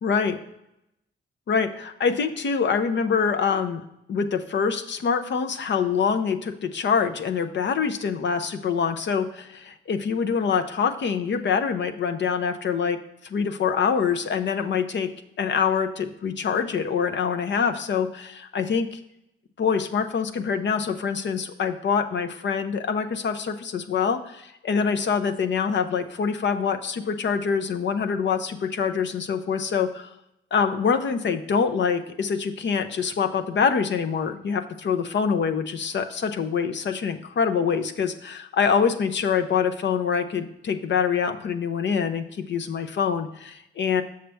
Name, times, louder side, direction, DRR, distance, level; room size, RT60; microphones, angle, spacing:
voice 1, 0.0-0.4 1.5-3.8 4.1-13.0 13.3-15.1 15.4-19.0 19.6-30.1 30.5-44.0, left 6 dB, 65° left, 8 dB, 0.7 m, -25 dB
6.7 x 6.6 x 3.4 m, 0.83 s
cardioid pair, 85°, 20 cm